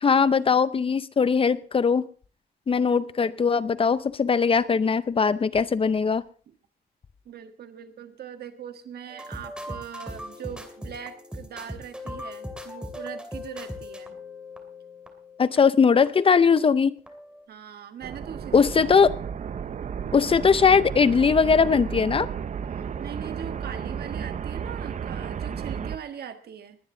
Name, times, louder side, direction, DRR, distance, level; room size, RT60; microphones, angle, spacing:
voice 1, 0.0-2.0 2.7-6.2 15.4-16.9 18.5-19.1 20.1-22.3, left 5 dB, 35° left, 15 dB, 0.6 m, -20 dB
voice 2, 2.8-3.4 6.5-6.6 7.2-14.2 17.5-18.7 22.5-26.8, right 8 dB, 75° right, 7 dB, 1.6 m, -41 dB
sound 1, 9.1-16.8 17.1-17.4, left 1 dB, 5° right, 2.7 m, -40 dB
sound 2, 18.0-26.0, right 7 dB, 45° right, 0.7 m, -33 dB
20.5 x 9.6 x 3.9 m, 0.41 s
cardioid pair, 120°, 16 cm